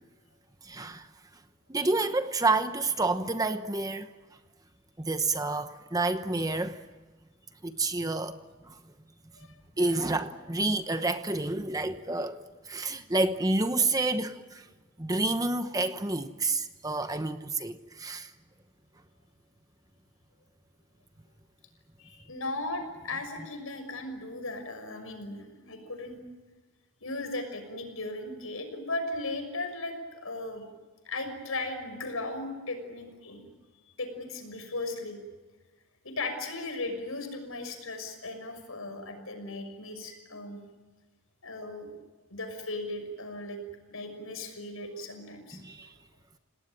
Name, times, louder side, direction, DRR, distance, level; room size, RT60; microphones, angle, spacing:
voice 1, 0.6-1.1 1.7-4.1 5.0-6.8 7.6-8.4 8.7-8.8 9.8-12.4 12.7-14.7 15.0-18.3 45.5-45.9, right 2 dB, 15° right, 0.9 m, -29 dB
voice 2, 22.0-26.2 27.0-30.7 31.0-33.5 34.0-35.2 36.0-40.6 41.4-41.9 42.3-43.6 43.9-45.9, left 2 dB, 70° left, 6.1 m, -37 dB
28.5 x 19.0 x 9.0 m
head